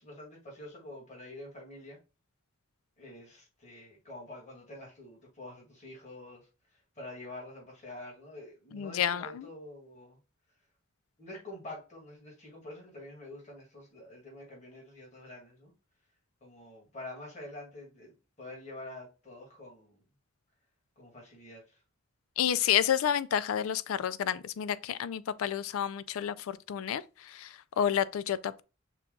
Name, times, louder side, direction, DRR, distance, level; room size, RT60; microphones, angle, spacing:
voice 1, 0.0-2.0 3.0-6.5 7.0-10.2 11.2-15.7 16.4-20.0 21.0-21.8, left 1 dB, 35° left, 1.9 m, -47 dB
voice 2, 8.7-9.5 22.4-28.6, left 9 dB, 85° left, 0.3 m, -30 dB
5.8 x 2.3 x 3.7 m
head